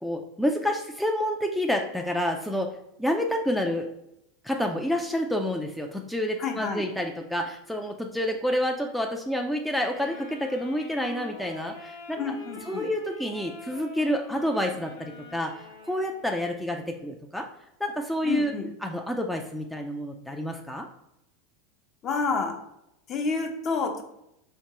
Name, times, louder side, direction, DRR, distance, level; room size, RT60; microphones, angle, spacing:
voice 1, 0.0-2.7 3.0-3.9 4.4-12.2 12.7-15.5 15.8-17.5 17.8-18.5 18.8-20.9, equal, ahead, 2 dB, 0.4 m, -28 dB
voice 2, 6.4-6.9 12.2-12.9 18.2-18.7 22.0-22.6 23.1-24.0, left 4 dB, 40° left, 3 dB, 0.7 m, -29 dB
Wind instrument woodwind instrument, 9.7-16.6, left 3 dB, 90° left, 0.8 m, -45 dB
4.4 x 2.9 x 2.8 m, 0.82 s
hypercardioid pair, 90°, 0 cm